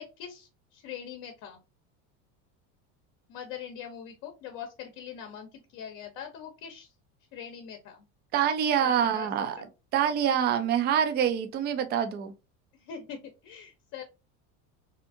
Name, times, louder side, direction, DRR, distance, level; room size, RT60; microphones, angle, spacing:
voice 1, 0.0-1.6 3.3-6.9 7.3-8.0 8.8-9.7 12.7-14.0, left 8 dB, 55° left, 0.7 m, -42 dB
voice 2, 8.3-9.5 9.9-12.3, right 9 dB, 25° right, 0.4 m, -25 dB
2.7 x 2.5 x 2.5 m
supercardioid pair, 130°, 39 cm